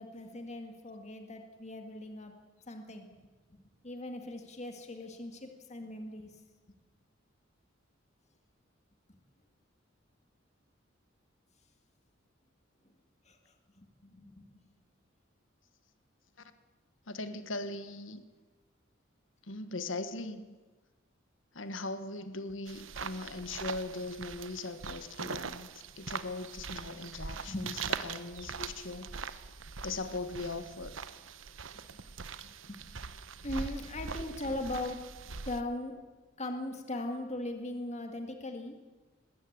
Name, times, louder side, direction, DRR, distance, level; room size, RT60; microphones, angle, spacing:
voice 1, 0.0-2.3 2.7-3.1 3.5-3.6 3.8-6.3 13.3-14.5 27.4-27.7 32.4-32.8 33.4-36.1 36.4-38.8, left 1 dB, 35° left, 5 dB, 2.0 m, -39 dB
voice 2, 17.1-18.2 19.4-20.5 21.5-29.2 29.8-31.0 34.5-34.6, left 2 dB, 75° left, 10 dB, 1.5 m, -40 dB
sound 1, 22.7-35.6, right 5 dB, 75° right, 1.0 m, -42 dB
20.0 x 16.5 x 8.7 m, 1.3 s
head